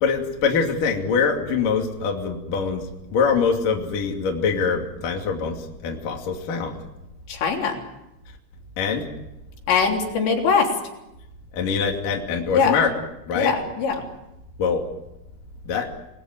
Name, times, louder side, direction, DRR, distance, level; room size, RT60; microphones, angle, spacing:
voice 1, 0.0-5.6 5.8-6.7 8.8-9.0 11.5-12.9 13.3-13.5 14.6-14.8 15.7-15.9, left 5 dB, 45° left, 1 dB, 3.8 m, -23 dB
voice 2, 7.3-7.8 9.7-10.7 12.5-12.8 13.4-14.0, left 5 dB, 65° left, 1 dB, 5.5 m, -21 dB
28.5 x 20.5 x 9.4 m, 0.93 s
omnidirectional pair, 5.8 m